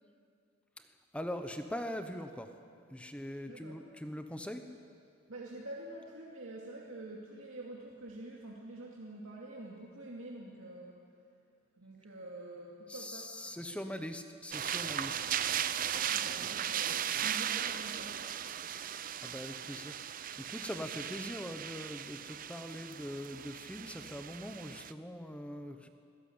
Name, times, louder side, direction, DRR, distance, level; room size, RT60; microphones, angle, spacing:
voice 1, 1.1-2.5 2.9-4.6 12.9-15.3 16.4-16.5 17.2-17.3 18.7-18.9 19.2-20.0 20.4-25.9, equal, 5° left, 7 dB, 1.0 m, -42 dB
voice 2, 3.5-3.8 5.3-11.1 11.8-13.6 16.1-18.3, right 2 dB, 80° right, -3 dB, 2.5 m, -47 dB
sound 1, 14.5-24.9, right 9 dB, 40° right, 0.6 m, -37 dB
24.5 x 17.5 x 8.7 m, 2.3 s
head